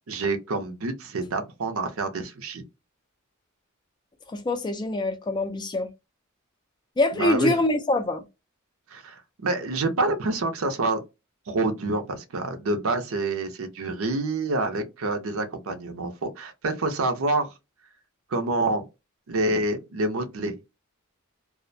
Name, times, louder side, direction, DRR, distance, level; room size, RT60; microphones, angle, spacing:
voice 1, 0.1-2.6 7.1-7.5 8.9-11.0 11.5-17.5 18.3-18.8 19.3-20.5, right 2 dB, 70° right, 0.6 m, -27 dB
voice 2, 4.3-5.9 7.0-8.2, left 2 dB, 20° left, 0.3 m, -24 dB
2.4 x 2.1 x 2.6 m
head